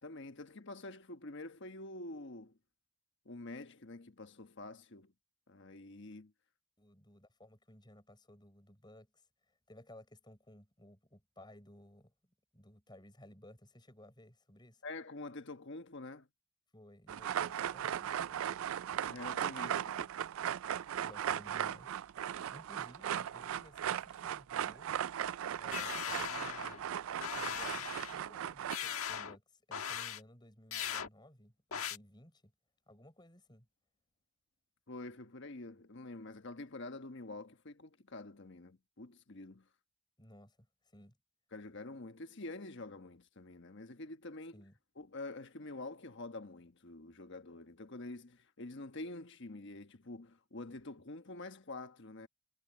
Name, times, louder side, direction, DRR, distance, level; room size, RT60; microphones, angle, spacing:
voice 1, 0.0-2.6 3.2-5.1 5.5-6.3 14.8-16.3 19.1-20.1 34.9-39.7 41.5-44.6 45.0-52.3, left 2 dB, 55° left, 1.2 m, -47 dB
voice 2, 6.8-9.2 9.7-12.1 12.5-14.8 16.7-18.7 21.0-22.0 22.5-25.0 25.6-26.9 27.4-32.5 32.9-33.7 40.2-40.7 40.9-41.2 44.5-44.7, left 1 dB, 20° left, 5.4 m, -58 dB
sound 1, 17.1-28.8, right 9 dB, 65° right, 0.3 m, -37 dB
sound 2, 25.7-26.8 27.2-28.2 28.7-29.4 29.7-30.2 30.7-31.1 31.7-32.0, left 8 dB, 75° left, 1.5 m, -39 dB
head